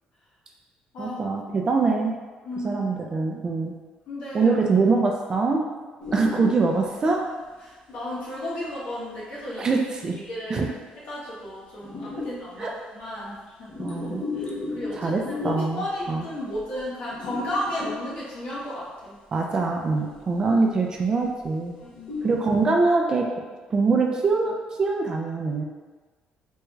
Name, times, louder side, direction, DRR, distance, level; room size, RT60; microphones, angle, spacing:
voice 1, 1.0-2.1 2.6-3.7 4.3-5.6 6.1-7.2 9.6-10.2 10.5-10.7 12.6-12.7 13.8-14.2 15.0-16.2 19.3-21.7 22.2-23.3 23.7-25.6, right 4 dB, 25° right, 1 dB, 0.3 m, -23 dB
voice 2, 2.4-2.8 4.1-4.5 7.6-9.7 10.3-10.7 11.1-13.7 14.3-15.1 15.4-19.1 21.8-22.2, left 1 dB, 80° left, -8 dB, 1.4 m, -33 dB
sound 1, 6.0-6.9 7.5-7.6 10.1-10.2 11.8-12.5 13.5-15.9 16.5-16.8 17.1-18.4 19.9-20.1 20.6-21.0 21.4-21.5 21.8-22.4, left 3 dB, 35° left, 0.6 m, -34 dB
3.5 x 2.2 x 3.0 m, 1.3 s
cardioid pair, 175°, 3 cm